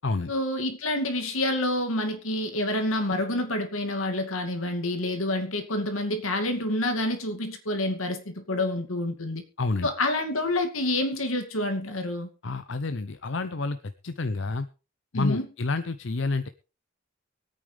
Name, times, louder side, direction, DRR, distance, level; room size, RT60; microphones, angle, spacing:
voice 1, 0.3-9.4 9.8-12.3 15.1-15.5, left 1 dB, 80° left, 6 dB, 2.3 m, -28 dB
voice 2, 9.6-9.9 12.4-13.8 14.0-14.7 15.1-16.4, left 3 dB, 60° left, 11 dB, 0.6 m, -28 dB
23.5 x 8.8 x 3.4 m, 0.33 s
head